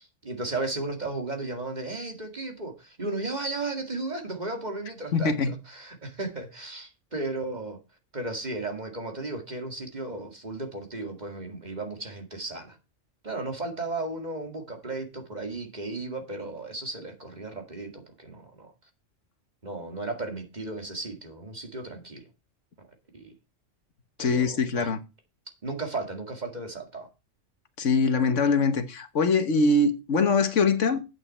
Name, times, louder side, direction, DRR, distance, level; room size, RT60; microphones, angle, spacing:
voice 1, 0.0-7.8 8.1-12.8 13.2-18.7 19.6-22.3 22.8-22.9 23.1-23.3 24.2-24.9 25.6-27.1, right 2 dB, 35° right, 2.2 m, -35 dB
voice 2, 5.1-5.5 24.2-25.0 27.8-31.0, left 4 dB, 70° left, 1.5 m, -23 dB
9.4 x 8.3 x 4.3 m
omnidirectional pair, 1.3 m